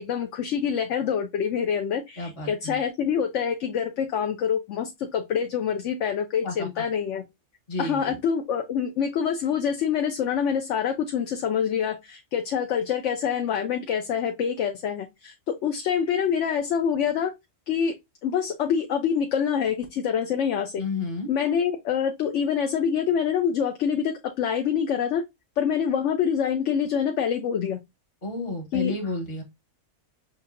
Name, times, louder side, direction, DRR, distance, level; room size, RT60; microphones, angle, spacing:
voice 1, 0.0-7.2 7.8-17.3 17.7-17.9 18.2-20.8 21.3-25.2 25.6-27.8 28.7-28.9, left 7 dB, 70° left, 1.0 m, -26 dB
voice 2, 2.2-2.8 6.4-6.8 7.7-8.2 20.8-21.3 28.2-29.4, left 2 dB, 50° left, 1.8 m, -31 dB
6.5 x 2.7 x 2.6 m
omnidirectional pair, 1.3 m